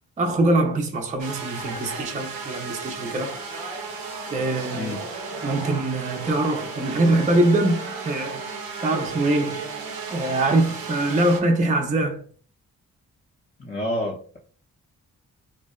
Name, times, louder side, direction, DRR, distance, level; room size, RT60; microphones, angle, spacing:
voice 1, 0.2-3.3 4.3-4.9 5.4-8.5 8.8-9.7 10.1-12.3, right 2 dB, 20° right, 0.4 m, -23 dB
sound 1, 1.2-2.3 3.2-4.6 5.0-5.9 6.1-6.7, left 5 dB, 80° left, 0.5 m, -45 dB
sound 2, 1.2-11.4, right 4 dB, 75° right, 0.6 m, -34 dB
voice 2, 4.7-5.1 13.6-14.4, left 1 dB, 25° left, 0.6 m, -29 dB
2.7 x 2.1 x 2.2 m
supercardioid pair, 45°, 36 cm